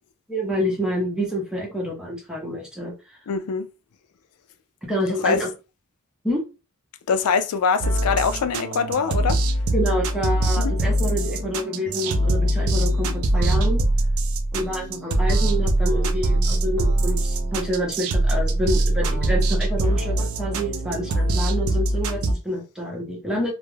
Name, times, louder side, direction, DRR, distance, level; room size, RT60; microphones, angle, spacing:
voice 1, 0.3-3.2 4.8-5.5 6.2-6.4 9.7-13.8 14.5-23.5, equal, 5° right, 0.7 m, -27 dB
voice 2, 3.3-3.7 5.2-5.4 7.1-9.4 10.6-10.7, left 5 dB, 80° left, 0.4 m, -23 dB
sound 1, 7.8-22.3, right 1 dB, 65° right, 0.4 m, -22 dB
2.3 x 2.1 x 3.1 m
head